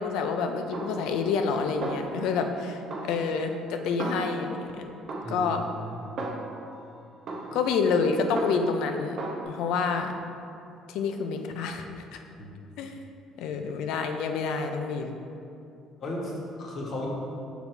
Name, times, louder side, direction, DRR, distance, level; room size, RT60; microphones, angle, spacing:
voice 1, 0.0-4.8 5.3-5.6 7.5-9.2 9.5-10.1 10.9-11.8 12.1-12.2 12.8-12.9 13.4-15.2, left 5 dB, 80° left, 6 dB, 0.5 m, -28 dB
Snare drum, 0.7-1.5 1.8-2.6 2.9-4.7 5.1-6.8 7.3-8.9 9.2-9.4, right 2 dB, 50° right, 0.8 m, -37 dB
voice 2, 16.0-17.1, left 1 dB, 45° left, -2 dB, 1.2 m, -35 dB
5.9 x 4.1 x 4.5 m, 2.7 s
cardioid pair, 135°, 0 cm